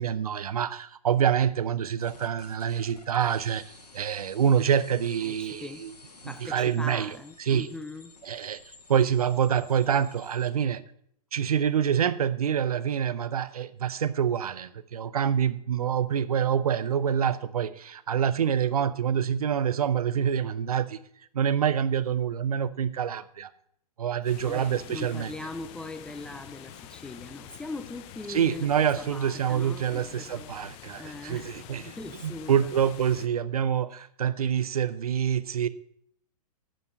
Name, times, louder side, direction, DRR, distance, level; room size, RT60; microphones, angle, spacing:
voice 1, 0.0-3.6 3.9-5.9 6.2-7.1 7.5-7.7 8.2-8.6 8.9-10.8 11.3-21.0 21.3-23.5 24.0-25.3 28.3-32.0 32.2-35.7, right 8 dB, 65° right, 15 dB, 0.7 m, -26 dB
sound 1, 2.0-10.6, left 3 dB, 80° left, 1.4 m, -52 dB
voice 2, 5.2-5.9 6.3-8.2 24.5-28.7 29.0-30.5 31.0-31.6 32.0-32.7, left 2 dB, 5° left, 10 dB, 0.3 m, -40 dB
sound 2, 24.2-33.3, left 11 dB, 30° left, 0.7 m, -47 dB
10.0 x 6.7 x 6.6 m, 0.68 s
figure-of-eight pair, 110°, 20 cm